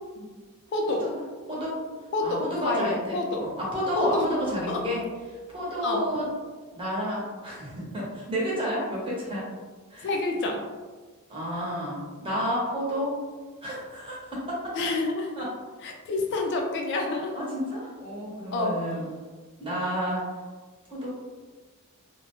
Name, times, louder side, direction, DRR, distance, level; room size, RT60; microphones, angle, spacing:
voice 1, 0.7-1.1 2.1-3.5 4.0-4.3 4.7-4.9 5.8-6.0 10.0-10.6 14.7-15.3 15.8-17.3 18.5-18.9, left 2 dB, 55° left, 2 dB, 0.3 m, -28 dB
voice 2, 1.5-1.8 2.2-5.0 5.5-6.3 6.7-9.4 9.9-10.1 11.3-13.2 13.6-14.8 15.4-15.5 17.3-19.0 19.6-20.2 20.9-21.1, equal, 25° right, -6 dB, 0.8 m, -30 dB
2.3 x 2.1 x 2.8 m, 1.3 s
head